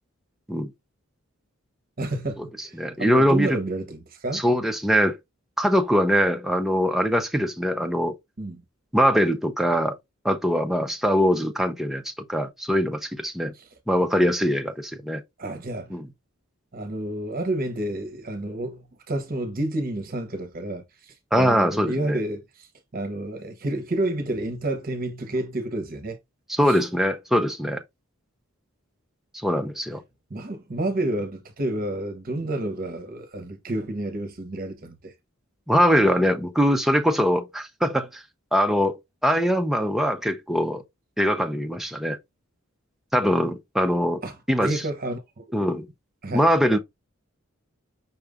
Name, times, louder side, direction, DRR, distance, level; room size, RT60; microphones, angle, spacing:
voice 1, 2.0-4.4 8.4-8.6 13.5-13.7 15.4-16.0 16.7-22.7 22.9-26.2 26.7-26.8 30.3-35.1 44.2-44.4 44.6-45.7 46.2-46.5, right 1 dB, 45° right, 0.9 m, -30 dB
voice 2, 2.8-3.6 4.3-5.2 5.6-8.1 8.9-9.9 10.2-13.5 13.9-15.2 15.9-16.1 21.3-22.2 26.6-27.8 29.4-30.0 35.7-38.2 38.5-40.8 41.2-42.2 43.1-44.2 44.5-44.8 45.5-45.9 46.3-46.8, equal, ahead, 0.6 m, -22 dB
5.8 x 2.5 x 3.5 m
head